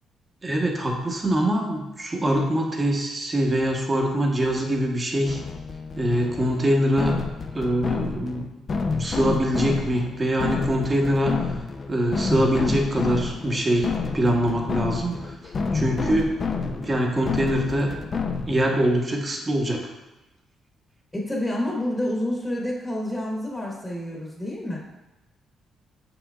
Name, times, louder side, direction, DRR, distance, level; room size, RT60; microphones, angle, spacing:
voice 1, 0.4-5.4 6.0-7.1 7.5-8.4 9.0-11.5 11.9-15.4 15.7-16.3 16.6-17.9 18.5-19.9, equal, 25° right, 1 dB, 1.2 m, -23 dB
sound 1, 5.3-18.8, left 4 dB, 40° left, 0.6 m, -29 dB
voice 2, 21.1-24.8, left 1 dB, 10° left, -3 dB, 1.3 m, -28 dB
6.7 x 5.9 x 2.4 m, 1.0 s
cardioid pair, 90°, 0 cm